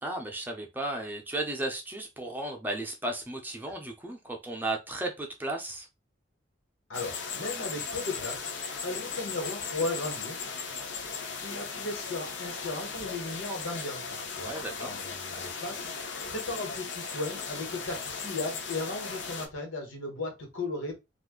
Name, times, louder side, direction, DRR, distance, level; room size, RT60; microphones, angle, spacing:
voice 1, 0.0-5.9 14.4-14.9, right 2 dB, 10° right, 0.5 m, -34 dB
voice 2, 6.9-8.5 8.8-10.8 11.4-21.0, left 2 dB, 85° left, 1.3 m, -36 dB
sound 1, 6.9-19.5, left 5 dB, 70° left, 0.6 m, -37 dB
2.6 x 2.4 x 3.7 m
head